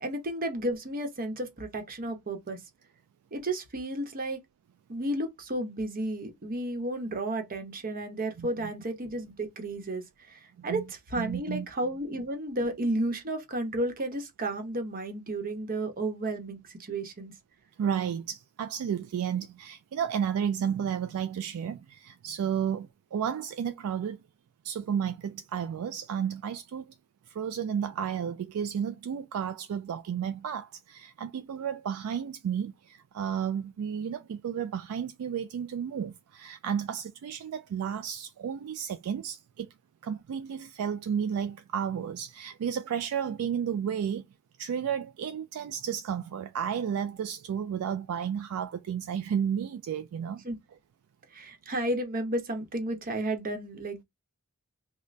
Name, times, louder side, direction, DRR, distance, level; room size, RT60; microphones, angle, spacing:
voice 1, 0.0-2.6 3.3-4.4 4.9-10.0 10.3-17.3 50.4-50.6 51.3-54.0, right 1 dB, 40° right, 0.9 m, -32 dB
voice 2, 8.4-8.7 10.7-10.8 11.1-11.7 17.8-24.2 24.6-27.0 27.3-39.7 40.0-44.3 44.6-50.4, right 8 dB, 70° right, 0.3 m, -32 dB
3.9 x 2.1 x 3.2 m
head